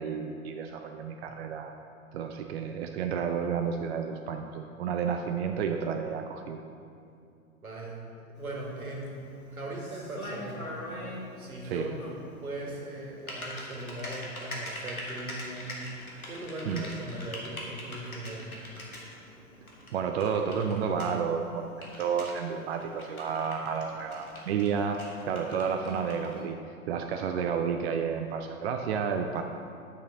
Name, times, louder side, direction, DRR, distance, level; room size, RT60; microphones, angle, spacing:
voice 1, 0.0-1.7 2.1-6.6 11.6-11.9 16.6-16.9 19.9-21.7 22.0-25.0 25.3-26.6 26.9-29.4, right 6 dB, 50° right, 5 dB, 0.5 m, -31 dB
voice 2, 7.6-8.1 8.4-9.1 9.5-10.8 11.4-12.0 12.4-15.7 16.3-18.5, right 1 dB, 85° right, -2 dB, 2.0 m, -39 dB
Typing, 8.4-26.4, left 1 dB, 85° left, 1.6 m, -43 dB
9.6 x 5.7 x 3.7 m, 2.5 s
figure-of-eight pair, 105°, 42 cm